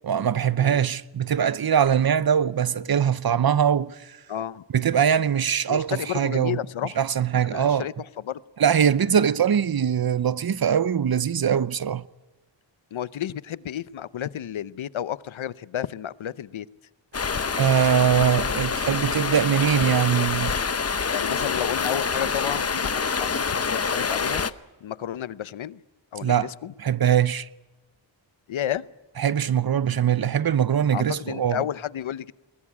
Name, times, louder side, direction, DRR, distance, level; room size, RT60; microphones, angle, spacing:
voice 1, 0.0-4.2 4.7-6.6 7.0-7.9 8.6-12.0 17.5-20.5 26.2-26.5 26.8-27.5 29.2-31.6, right 8 dB, 50° right, 0.8 m, -22 dB
voice 2, 4.3-4.6 5.7-7.0 7.4-8.4 12.9-16.7 21.1-24.5 24.8-25.8 26.1-26.7 28.5-28.8 30.9-32.3, left 11 dB, 90° left, 0.8 m, -31 dB
Stream, 17.1-24.5, left 5 dB, 35° left, 0.8 m, -26 dB
21.5 x 21.0 x 8.5 m
wide cardioid pair, 100°, 46 cm